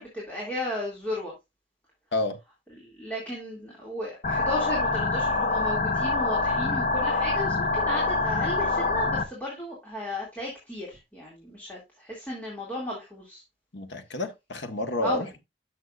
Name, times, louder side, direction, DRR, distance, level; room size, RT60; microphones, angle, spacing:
voice 1, 0.0-1.3 2.8-13.4 15.0-15.3, left 1 dB, 10° left, 2.4 m, -34 dB
sound 1, 4.2-9.2, left 3 dB, 45° left, 0.8 m, -25 dB
voice 2, 13.7-15.4, left 2 dB, 80° left, 1.4 m, -30 dB
10.5 x 6.4 x 2.5 m
head